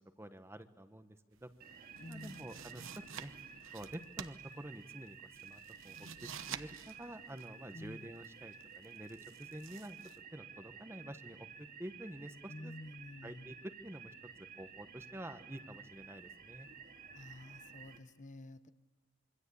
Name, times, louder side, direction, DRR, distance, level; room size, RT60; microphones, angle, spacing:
voice 1, 0.0-1.5 1.8-3.3 3.7-5.2 5.4-10.0 10.3-11.5 11.8-12.7 13.2-14.1 14.4-16.7, right 1 dB, 10° right, 9 dB, 1.1 m, -49 dB
sound 1, 1.3-10.2, right 7 dB, 60° right, 1.0 m, -51 dB
sound 2, 1.6-18.0, right 6 dB, 45° right, 2.6 m, -53 dB
voice 2, 2.0-2.5 7.7-8.1 12.5-13.5 17.1-18.7, left 1 dB, 35° left, 10 dB, 1.1 m, -50 dB
26.5 x 24.0 x 8.5 m, 1.1 s
head